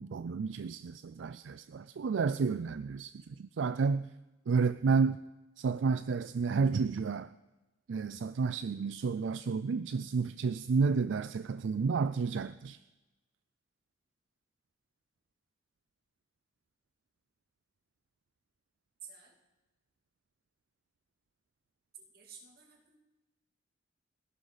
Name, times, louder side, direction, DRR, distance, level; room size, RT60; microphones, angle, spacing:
voice 1, 0.0-4.1 4.5-5.2 5.6-7.3 7.9-12.8, right 5 dB, 75° right, 14 dB, 0.4 m, -31 dB
voice 2, 22.1-23.0, right 4 dB, 55° right, 1 dB, 2.6 m, -55 dB
30.0 x 11.5 x 4.1 m, 1.1 s
head